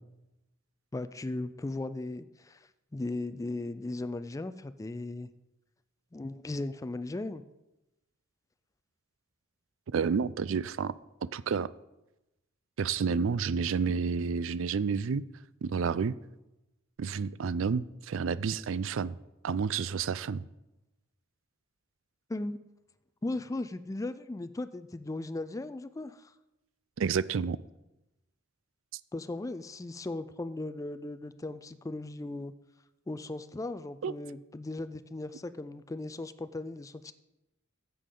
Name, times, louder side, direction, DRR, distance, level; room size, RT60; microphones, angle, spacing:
voice 1, 0.9-2.6 2.9-5.3 6.1-7.4 22.3-22.6 23.2-26.3 29.1-32.5 33.1-37.1, left 2 dB, 15° left, 13 dB, 0.4 m, -37 dB
voice 2, 9.9-10.9 11.2-11.7 12.8-15.2 15.6-16.2 17.0-19.1 19.4-20.4 27.0-27.6 34.0-34.1, right 6 dB, 70° right, 18 dB, 0.4 m, -30 dB
13.5 x 8.4 x 3.8 m, 0.96 s
head